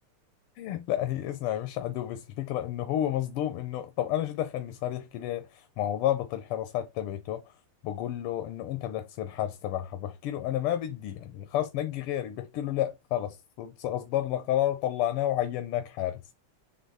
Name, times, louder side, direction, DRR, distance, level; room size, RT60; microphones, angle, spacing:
voice 1, 0.6-7.5 7.8-16.2, left 12 dB, 90° left, 1.7 m, -31 dB
7.9 x 2.9 x 4.1 m
omnidirectional pair, 2.4 m